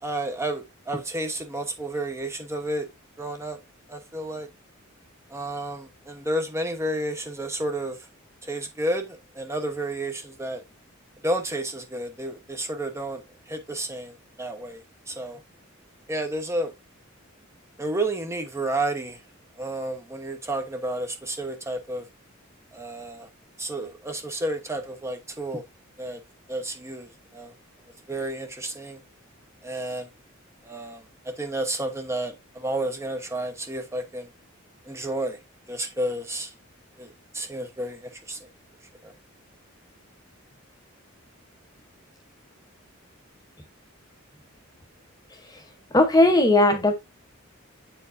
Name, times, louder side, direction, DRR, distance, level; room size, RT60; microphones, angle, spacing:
voice 1, 0.0-2.9 3.2-3.6 3.9-4.5 5.3-8.1 8.4-10.6 11.2-14.1 14.4-14.8 15.1-15.4 16.1-16.7 17.8-19.2 19.6-22.0 22.7-23.3 23.6-25.6 26.0-26.2 26.5-27.5 28.1-29.0 29.6-30.1 30.6-34.3 34.9-35.4 35.7-36.5 37.0-38.5 39.0-39.1, right 1 dB, 15° right, 1.0 m, -31 dB
voice 2, 45.9-46.9, left 2 dB, 20° left, 0.9 m, -17 dB
8.4 x 4.5 x 2.6 m
head